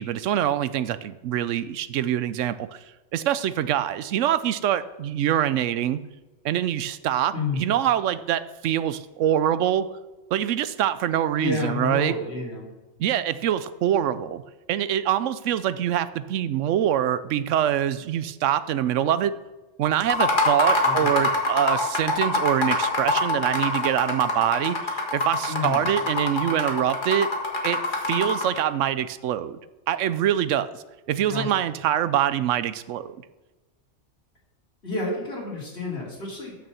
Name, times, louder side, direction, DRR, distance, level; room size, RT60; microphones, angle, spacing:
voice 1, 0.0-2.8 3.1-6.0 6.4-9.9 10.3-12.1 13.0-14.4 14.7-19.4 19.8-27.3 27.6-27.8 28.1-29.6 29.9-33.2, right 11 dB, 85° right, 14 dB, 0.9 m, -24 dB
voice 2, 7.3-7.7 11.3-12.7 20.8-21.3 25.5-25.8 31.2-31.7 34.8-36.6, left 3 dB, 60° left, -4 dB, 3.1 m, -30 dB
sound 1, 20.0-28.6, left 2 dB, 40° left, 1.7 m, -24 dB
8.3 x 6.4 x 6.9 m, 1.1 s
omnidirectional pair, 1.3 m